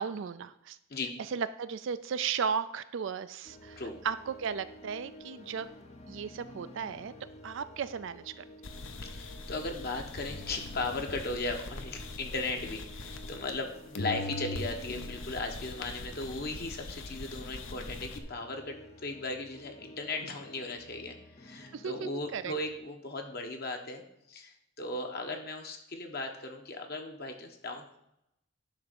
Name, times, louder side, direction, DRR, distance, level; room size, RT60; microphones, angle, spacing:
voice 1, 0.0-0.8 1.3-5.7 6.1-7.1 7.4-8.4 21.7-22.5, right 6 dB, 60° right, 12 dB, 0.4 m, -35 dB
sound 1, 3.4-22.8, equal, 30° left, 0.7 m, -53 dB
sound 2, 8.6-13.7 13.9-18.2, left 2 dB, 65° left, 0.8 m, -41 dB
voice 2, 9.0-24.0 24.3-28.0, left 2 dB, 50° left, 4 dB, 1.1 m, -37 dB
10.5 x 3.5 x 6.7 m, 0.79 s
head